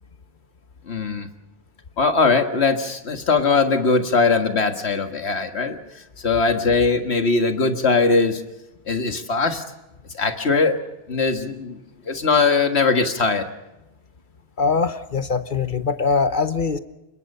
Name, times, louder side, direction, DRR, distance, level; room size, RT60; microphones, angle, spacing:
voice 1, 0.9-1.3 2.0-5.8 6.2-8.4 8.9-9.6 10.1-10.8 11.1-11.8 12.1-13.5, left 4 dB, 75° left, 7 dB, 2.0 m, -20 dB
voice 2, 14.6-16.8, left 5 dB, 50° left, 11 dB, 1.1 m, -22 dB
26.0 x 22.0 x 5.5 m, 0.97 s
omnidirectional pair, 1.1 m